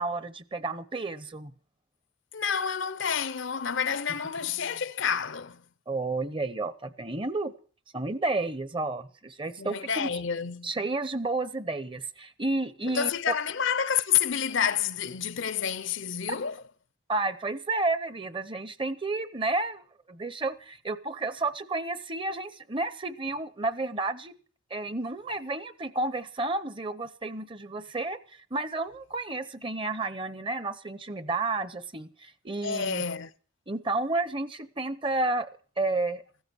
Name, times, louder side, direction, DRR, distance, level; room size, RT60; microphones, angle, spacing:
voice 1, 0.0-1.5 5.9-7.5 7.9-10.1 10.6-13.4 16.3-16.4 17.1-19.8 20.1-24.3 24.7-28.2 28.5-33.0 33.7-35.5 35.8-36.2, right 2 dB, 25° right, 0.8 m, -31 dB
voice 2, 2.3-5.6 9.6-10.7 12.8-16.6 32.6-33.3, left 7 dB, 60° left, 0.7 m, -29 dB
16.0 x 14.0 x 6.2 m
head